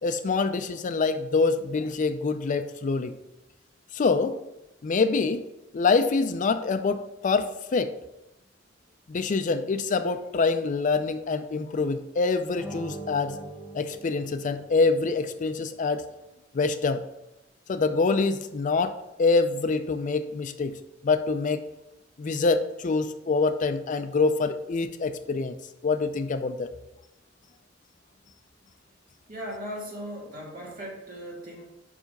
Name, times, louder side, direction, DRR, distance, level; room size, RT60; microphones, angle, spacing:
voice 1, 0.0-3.2 3.9-4.4 4.8-5.5 5.7-7.9 9.1-13.4 13.7-16.0 16.5-17.0 17.7-20.7 21.0-21.6 22.2-25.6 25.8-26.7, left 4 dB, 40° left, 10 dB, 0.4 m, -25 dB
sound 1, 12.5-15.2, right 2 dB, 10° right, 1.1 m, -42 dB
voice 2, 29.3-31.7, equal, 50° right, -2 dB, 2.1 m, -38 dB
5.7 x 4.9 x 5.2 m, 0.93 s
head